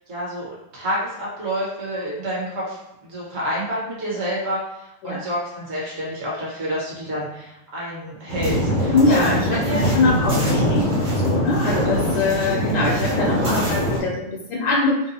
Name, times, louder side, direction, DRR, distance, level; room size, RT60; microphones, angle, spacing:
voice 1, 0.1-4.6 5.0-9.8 13.4-13.9, equal, 40° right, -6 dB, 1.2 m, -28 dB
sound 1, 8.3-14.0, equal, 60° right, 1.9 m, -22 dB
voice 2, 8.9-15.1, left 3 dB, 75° left, -2 dB, 1.2 m, -22 dB
4.0 x 2.4 x 2.7 m, 0.86 s
omnidirectional pair, 2.2 m